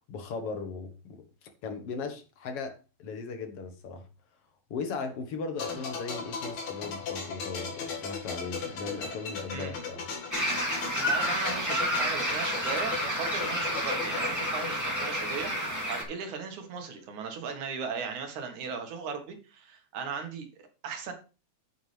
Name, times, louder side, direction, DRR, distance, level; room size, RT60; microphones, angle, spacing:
voice 1, 0.1-4.0 4.7-10.0, left 4 dB, 55° left, 2.2 m, -38 dB
sound 1, 5.6-16.2 16.5-16.7, left 5 dB, 80° left, 3.4 m, -37 dB
sound 2, 10.3-16.0, equal, 5° right, 2.1 m, -30 dB
voice 2, 10.9-21.1, right 5 dB, 85° right, 3.0 m, -37 dB
9.3 x 8.5 x 3.4 m
omnidirectional pair, 3.3 m